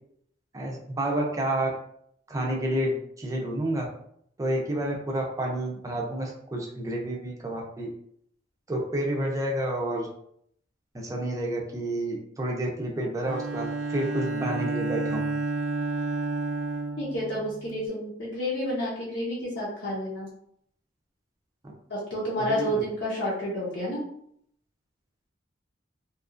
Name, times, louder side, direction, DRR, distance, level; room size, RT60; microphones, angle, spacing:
voice 1, 0.5-1.7 2.3-3.9 4.4-7.9 8.7-10.1 10.9-13.6 13.9-15.3 22.4-22.6, right 1 dB, 20° right, -1 dB, 0.5 m, -29 dB
Bowed string instrument, 13.2-17.8, right 3 dB, 80° right, 0.4 m, -31 dB
voice 2, 17.0-20.3 21.9-24.0, equal, 70° left, -7 dB, 0.7 m, -30 dB
2.8 x 2.3 x 2.4 m, 0.70 s
head